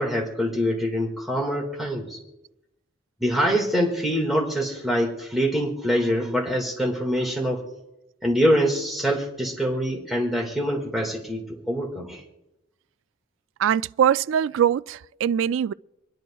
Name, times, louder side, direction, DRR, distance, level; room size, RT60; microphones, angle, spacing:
voice 1, 0.0-2.2 3.2-7.6 8.2-12.2, equal, ahead, 1.8 m, -24 dB
voice 2, 13.6-15.7, right 9 dB, 85° right, 0.3 m, -22 dB
26.5 x 10.5 x 2.3 m
head